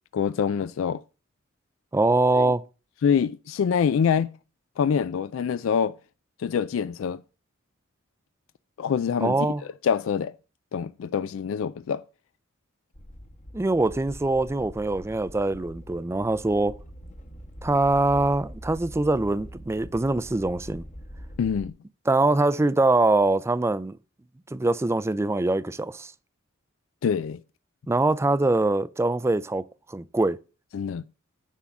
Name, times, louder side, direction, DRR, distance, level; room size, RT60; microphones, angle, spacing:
voice 1, 0.1-1.0 2.3-2.5 3.0-4.3 4.8-5.9 6.4-7.2 8.8-9.5 9.8-10.3 10.7-12.0 21.4-21.7 27.0-27.4 30.7-31.0, left 7 dB, 70° left, 0.3 m, -25 dB
voice 2, 1.9-2.6 9.2-9.6 13.5-16.8 17.6-20.8 22.1-24.0 24.5-26.1 27.9-30.4, right 2 dB, 15° right, 0.3 m, -23 dB
sound 1, 12.9-21.7, equal, 40° left, 1.2 m, -43 dB
9.9 x 3.7 x 7.1 m
head